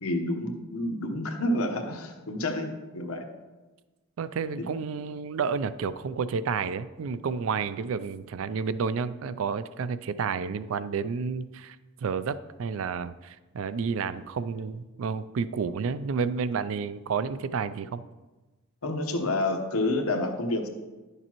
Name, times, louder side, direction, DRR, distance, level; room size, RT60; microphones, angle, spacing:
voice 1, 0.0-3.3 4.6-4.7 18.8-20.7, left 1 dB, 90° left, 4 dB, 1.1 m, -29 dB
voice 2, 4.2-18.0, right 5 dB, 70° right, 15 dB, 0.4 m, -30 dB
11.0 x 6.7 x 3.0 m, 1.2 s
head